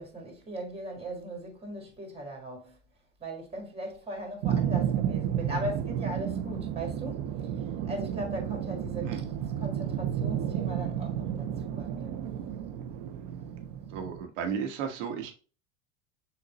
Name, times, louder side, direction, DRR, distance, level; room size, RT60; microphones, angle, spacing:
voice 1, 0.0-2.8 3.2-7.3 7.6-9.2 9.6-12.2, right 1 dB, 15° right, 1.8 m, -39 dB
sound 1, 4.4-14.2, right 9 dB, 55° right, 0.8 m, -32 dB
voice 2, 13.9-15.3, right 7 dB, 70° right, 1.3 m, -34 dB
6.8 x 2.6 x 3.0 m
hypercardioid pair, 90°, 38 cm